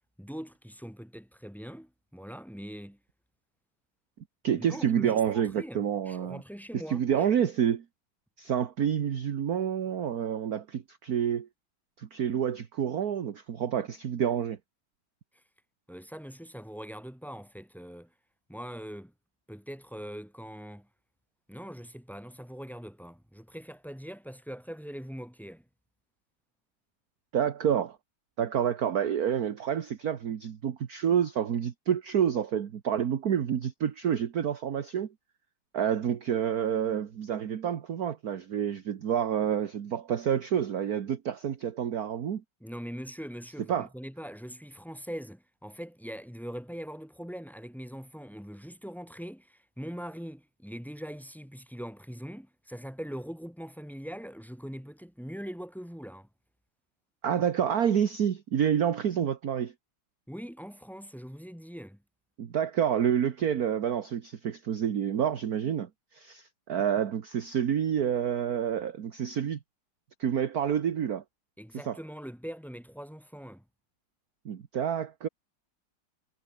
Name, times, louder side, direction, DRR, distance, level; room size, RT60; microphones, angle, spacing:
voice 1, 0.2-3.0 4.5-7.3 15.9-18.1 18.5-19.1 19.5-20.9 21.5-25.6 42.6-56.3 60.3-62.0 71.6-73.6, equal, ahead, 4.4 m, -42 dB
voice 2, 4.4-6.4 6.9-7.8 8.4-11.5 12.0-14.6 27.3-28.0 28.4-35.1 35.7-42.4 43.7-43.9 57.2-59.7 62.4-69.6 70.2-71.2 71.8-72.0 74.4-75.3, right 8 dB, 50° right, 1.5 m, -28 dB
omnidirectional pair, 2.4 m